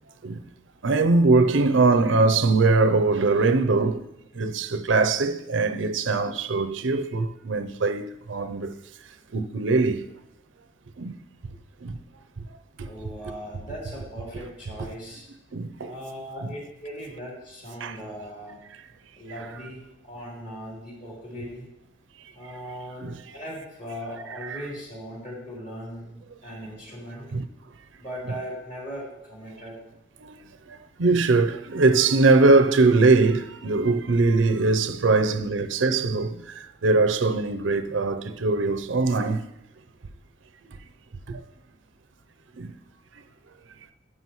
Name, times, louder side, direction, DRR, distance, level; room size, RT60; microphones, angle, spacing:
voice 1, 0.8-4.1 4.3-8.7 9.3-10.0 11.0-11.1 11.8-12.0 12.4-12.5 12.8-13.1 15.5-15.9 16.4-16.5 17.8-18.0 23.0-23.2 24.4-24.7 27.3-27.5 30.2-30.4 30.7-39.4 40.7-40.8 41.3-41.4 42.6-42.7, right 3 dB, 90° right, 0.6 m, -22 dB
voice 2, 12.8-15.2 15.8-18.6 19.2-21.7 22.3-27.3 28.0-29.8, equal, 40° left, 3.4 m, -39 dB
11.0 x 8.0 x 3.1 m
head